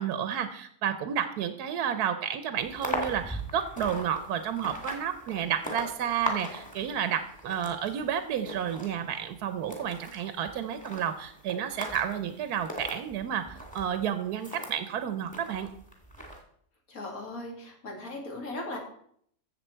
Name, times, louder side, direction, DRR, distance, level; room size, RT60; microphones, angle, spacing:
voice 1, 0.0-15.7, right 9 dB, 80° right, 9 dB, 1.2 m, -31 dB
sound 1, 2.6-14.8 15.3-16.4, equal, 5° left, 2.0 m, -40 dB
voice 2, 16.9-18.8, left 2 dB, 65° left, 1 dB, 2.7 m, -38 dB
14.0 x 7.5 x 4.5 m, 0.66 s
omnidirectional pair, 1.7 m